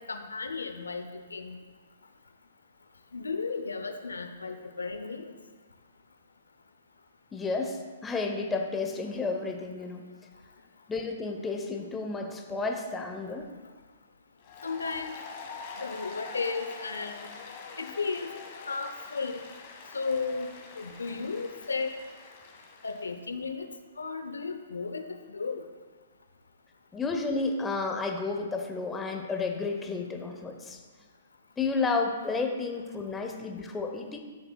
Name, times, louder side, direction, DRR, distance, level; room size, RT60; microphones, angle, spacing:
voice 1, 0.1-1.1 1.3-1.6 3.1-5.3 14.6-15.2 15.8-17.3 17.8-18.3 18.7-19.5 19.9-22.0 22.8-23.7 24.0-25.6, left 4 dB, 85° left, 7 dB, 0.7 m, -34 dB
voice 2, 7.3-10.1 10.9-13.5 26.9-30.8 31.6-34.2, left 4 dB, 15° left, 3 dB, 0.9 m, -31 dB
Applause, 14.4-23.1, left 4 dB, 45° left, 1.6 m, -45 dB
13.0 x 6.6 x 2.3 m, 1.4 s
hypercardioid pair, 125°, 0 cm